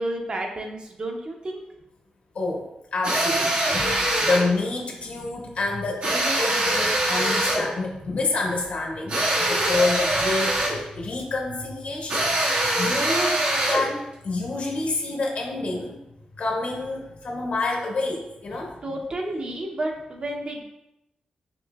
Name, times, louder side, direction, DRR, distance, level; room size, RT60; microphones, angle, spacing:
voice 1, 0.0-1.6 18.8-20.6, right 1 dB, 40° right, 1 dB, 0.7 m, -31 dB
voice 2, 2.3-13.4 13.6-16.0 16.4-18.9, left 3 dB, 65° left, 0 dB, 1.0 m, -28 dB
sound 1, 3.0-4.5 6.0-7.7 9.1-10.8 12.1-13.9, right 1 dB, 85° right, 1.4 m, -23 dB
6.0 x 3.1 x 2.3 m, 0.88 s
wide cardioid pair, 105°, 2 cm